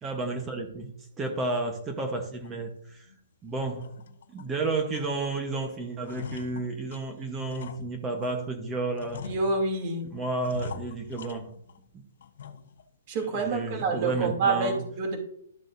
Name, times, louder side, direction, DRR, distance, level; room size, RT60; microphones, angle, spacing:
voice 1, 0.0-0.9 1.2-3.1 3.4-3.8 4.3-9.2 10.1-11.5 13.3-14.8, right 3 dB, 15° right, 4 dB, 1.2 m, -32 dB
sound 1, 2.4-2.6 3.1-3.2 3.6-4.5 4.9-5.5 5.8-8.5 8.9-9.9 10.4-11.9 12.2-12.8 13.2-13.3 13.8-14.1, left 6 dB, 65° left, 1.0 m, -43 dB
voice 2, 9.2-10.0 13.1-15.2, right 3 dB, 35° right, 1 dB, 2.9 m, -27 dB
13.0 x 7.3 x 2.7 m, 0.68 s
hypercardioid pair, 160°, 0 cm